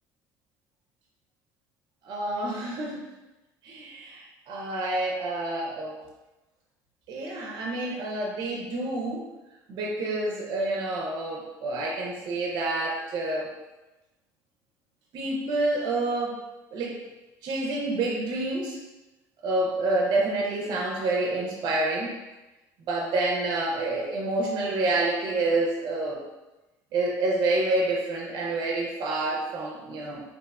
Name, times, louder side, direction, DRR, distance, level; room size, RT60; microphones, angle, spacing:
voice 1, 2.0-3.0 3.6-6.0 7.1-9.3 9.7-13.5 15.1-16.3 16.7-17.0 17.4-18.8 19.4-22.1 22.9-26.2 26.9-30.2, right 2 dB, 55° right, -2 dB, 0.5 m, -28 dB
2.9 x 2.0 x 2.3 m, 1.1 s
cardioid pair, 110°, 9 cm